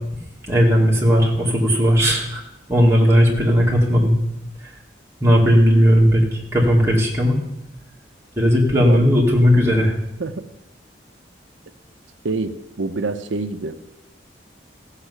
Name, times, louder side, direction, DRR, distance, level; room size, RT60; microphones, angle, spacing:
voice 1, 0.5-2.4 2.7-4.2 4.6-4.7 5.2-7.4 8.4-9.9, equal, 15° right, -4 dB, 2.5 m, -16 dB
voice 2, 12.2-13.8, right 3 dB, 85° right, 9 dB, 0.7 m, -26 dB
15.5 x 5.7 x 8.1 m, 0.90 s
head